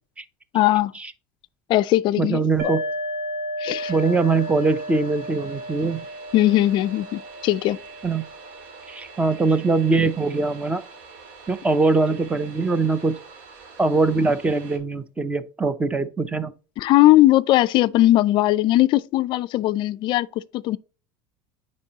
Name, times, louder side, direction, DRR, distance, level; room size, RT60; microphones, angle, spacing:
voice 1, 0.5-0.9 1.7-2.7 3.6-3.9 6.3-7.8 16.8-20.3 20.5-20.8, left 15 dB, 45° left, 0.3 m, -19 dB
voice 2, 2.2-2.8 3.9-6.0 8.0-8.2 8.9-10.8 11.5-13.2 13.8-16.5, right 3 dB, 10° right, 0.6 m, -22 dB
sound 1, 2.6-10.1, equal, 60° right, 1.7 m, -34 dB
sound 2, 3.8-14.8, right 5 dB, 85° right, 2.1 m, -45 dB
9.8 x 4.2 x 2.8 m
supercardioid pair, 140°, 11 cm